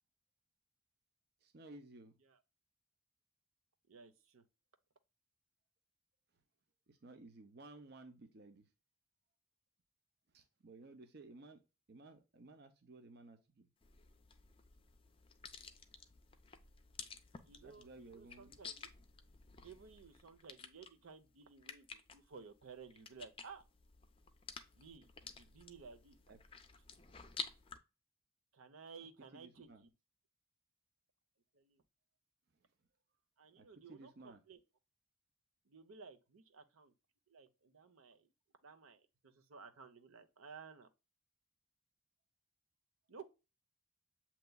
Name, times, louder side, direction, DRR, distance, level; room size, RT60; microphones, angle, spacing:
voice 1, 1.4-2.2 6.9-8.7 10.3-11.6 11.9-13.7 17.6-18.6 26.3-26.4 29.3-29.8 33.6-34.4, right 2 dB, 50° right, 0.6 m, -56 dB
voice 2, 3.9-4.4 15.6-15.8 17.4-18.9 19.6-23.6 24.8-26.2 28.5-29.9 31.5-31.8 33.4-34.6 35.6-36.9 37.3-38.3 38.6-40.9 43.1-43.3, right 5 dB, 85° right, 0.8 m, -56 dB
sound 1, 13.8-27.8, left 5 dB, 25° left, 0.5 m, -52 dB
7.9 x 3.0 x 2.2 m
head